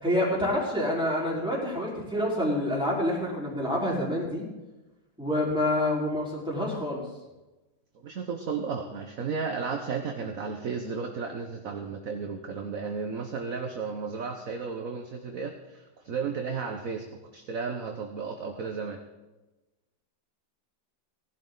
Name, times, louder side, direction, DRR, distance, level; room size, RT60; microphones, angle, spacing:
voice 1, 0.0-4.4 5.2-7.0, left 1 dB, ahead, -5 dB, 4.2 m, -27 dB
voice 2, 8.0-17.0 17.3-19.0, right 5 dB, 50° right, 4 dB, 1.3 m, -33 dB
18.5 x 11.5 x 3.9 m, 1.1 s
omnidirectional pair, 2.0 m